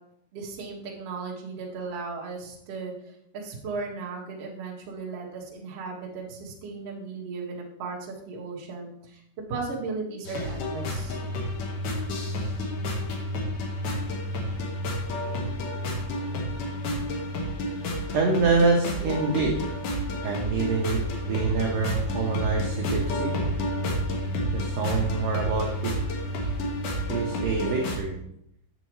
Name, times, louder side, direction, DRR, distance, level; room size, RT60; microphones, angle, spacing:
voice 1, 0.3-2.9 3.3-9.2 9.5-11.2, right 4 dB, 55° right, -4 dB, 1.7 m, -36 dB
sound 1, 10.2-28.0, equal, 70° left, 2.1 m, -30 dB
voice 2, 18.1-19.7 20.2-23.4 24.5-25.9 27.1-28.1, right 4 dB, 75° right, -1 dB, 2.0 m, -26 dB
9.5 x 6.7 x 3.1 m, 0.76 s
omnidirectional pair, 5.2 m